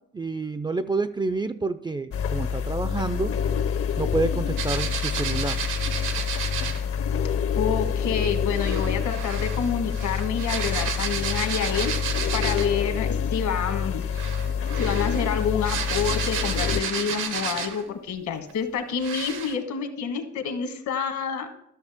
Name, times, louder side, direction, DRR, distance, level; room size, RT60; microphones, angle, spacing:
voice 1, 0.1-3.3 4.0-5.6, right 3 dB, 15° right, 11 dB, 0.3 m, -28 dB
sound 1, 2.1-16.8, left 7 dB, 50° left, 0.6 m, -27 dB
sound 2, 4.6-6.8 8.5-12.8 14.0-17.9 18.5-18.6 19.0-19.5, right 6 dB, 85° right, 1.2 m, -32 dB
voice 2, 7.6-11.9 12.3-14.0 14.8-21.5, left 7 dB, 70° left, 6 dB, 1.4 m, -28 dB
13.5 x 6.4 x 3.5 m, 0.74 s
cardioid pair, 90°, 30 cm